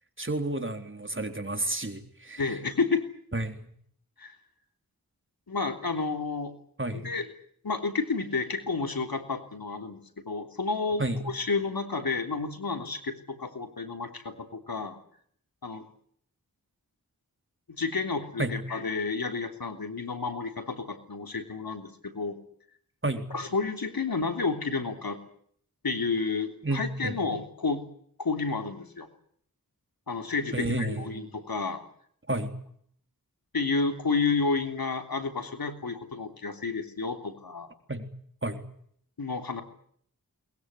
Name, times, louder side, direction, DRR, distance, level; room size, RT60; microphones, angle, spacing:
voice 1, 0.2-2.6 3.3-3.7 6.8-7.0 11.0-11.2 18.4-18.5 23.0-23.3 26.6-27.2 30.5-31.3 32.3-32.5 37.9-38.1 38.4-38.6, right 1 dB, 35° right, 6 dB, 3.8 m, -31 dB
voice 2, 2.4-3.1 4.2-4.4 5.5-6.5 6.9-7.3 7.6-10.0 10.2-15.0 15.6-15.8 17.7-22.4 23.3-25.2 25.8-27.8 28.2-29.1 30.1-31.8 33.5-37.7 39.2-39.6, left 4 dB, 80° left, 6 dB, 3.3 m, -31 dB
22.5 x 21.0 x 9.7 m, 0.64 s
wide cardioid pair, 55°, 35 cm